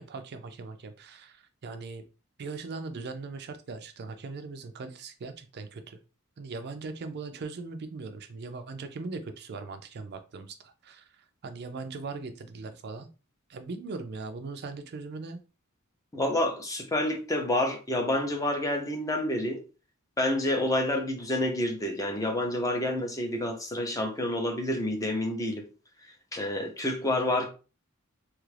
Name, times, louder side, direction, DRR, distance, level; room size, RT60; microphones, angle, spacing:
voice 1, 0.0-2.0 2.4-6.0 6.4-13.1 13.5-15.4, right 3 dB, 50° right, 0.4 m, -40 dB
voice 2, 16.1-19.6 20.2-25.6 26.3-27.5, left 1 dB, 15° left, 0.6 m, -28 dB
3.2 x 2.4 x 3.2 m
head